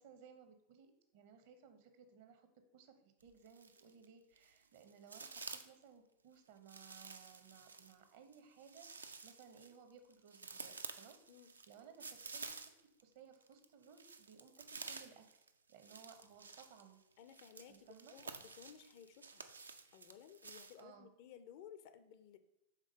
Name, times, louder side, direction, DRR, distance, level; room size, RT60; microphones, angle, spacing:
voice 1, 0.0-2.5 2.7-11.2 11.7-12.7 13.0-17.0 17.7-18.1 20.8-21.1, right 7 dB, 50° right, 8 dB, 0.8 m, -61 dB
sound 1, 3.2-4.0 4.4-5.8 6.7-13.0 13.3-20.8, right 4 dB, 75° right, 0.4 m, -51 dB
voice 2, 17.2-19.4 19.9-22.4, left 9 dB, 50° left, 11 dB, 0.4 m, -57 dB
5.2 x 3.7 x 5.1 m, 0.86 s
figure-of-eight pair, 90°, 0 cm